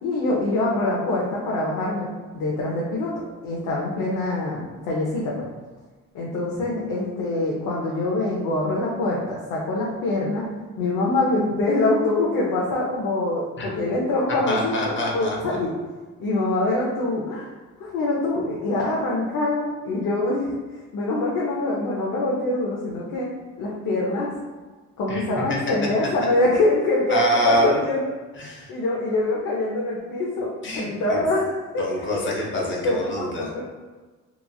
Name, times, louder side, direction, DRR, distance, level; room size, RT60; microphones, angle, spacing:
voice 1, 0.0-2.1 2.3-3.1 3.4-5.5 6.1-10.5 10.8-15.7 16.2-17.5 17.8-20.6 20.9-23.3 23.6-24.3 25.0-28.1 28.7-32.1 32.8-33.1 33.4-33.6, left 2 dB, 85° left, -4 dB, 0.6 m, -24 dB
voice 2, 14.5-15.3 25.1-25.2 27.1-27.8 28.4-28.7 30.6-31.2 31.8-33.5, equal, 40° left, -3 dB, 0.8 m, -25 dB
2.9 x 2.5 x 2.3 m, 1.3 s
cardioid pair, 90°, 30 cm